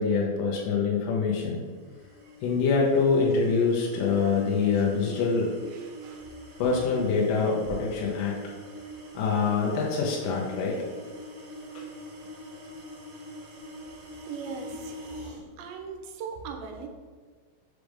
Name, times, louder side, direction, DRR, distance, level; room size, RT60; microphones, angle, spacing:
voice 1, 0.0-1.6 2.4-5.5 6.6-8.4 9.1-10.8 11.8-11.9, left 5 dB, 80° left, -3 dB, 2.3 m, -25 dB
sound 1, 1.5-15.4, equal, 65° right, 2.6 m, -44 dB
voice 2, 5.7-6.3 14.3-15.0 15.6-16.9, right 5 dB, 90° right, 4 dB, 2.5 m, -39 dB
6.2 x 3.3 x 4.9 m, 1.5 s
omnidirectional pair, 4.1 m